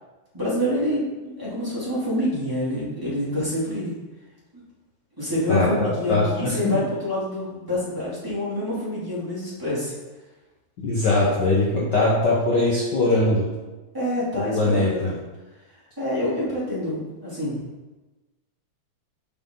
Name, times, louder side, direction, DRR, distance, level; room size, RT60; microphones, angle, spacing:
voice 1, 0.3-3.9 5.2-9.9 13.9-15.1 16.0-17.6, left 1 dB, 5° right, -10 dB, 2.3 m, -27 dB
voice 2, 5.5-6.8 10.8-13.5 14.5-15.1, left 2 dB, 70° left, -5 dB, 1.0 m, -21 dB
7.7 x 6.1 x 3.8 m, 1.2 s
omnidirectional pair, 3.5 m